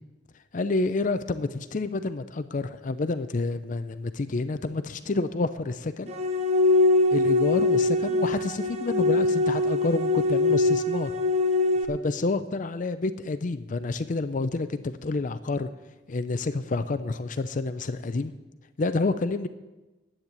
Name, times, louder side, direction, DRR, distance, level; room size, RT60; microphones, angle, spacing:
voice 1, 0.5-6.1 7.1-11.2 11.9-15.7 16.1-18.3 18.8-19.5, left 3 dB, 45° left, 12 dB, 0.5 m, -28 dB
sound 1, 6.1-11.8, left 2 dB, 35° right, 1.3 m, -23 dB
10.5 x 8.8 x 8.2 m, 1.1 s
head